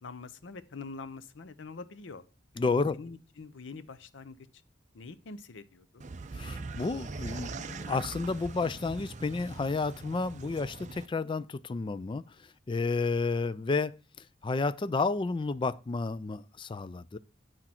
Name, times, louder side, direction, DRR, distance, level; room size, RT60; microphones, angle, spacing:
voice 1, 0.0-2.2 2.6-4.5 4.9-6.0, left 4 dB, 75° left, 0.7 m, -45 dB
voice 2, 2.6-3.0 6.3-12.2 12.7-14.0 14.4-17.2, left 3 dB, 25° left, 0.3 m, -31 dB
sound 1, 6.0-11.1, right 3 dB, 40° right, 0.5 m, -41 dB
8.9 x 6.1 x 4.4 m
head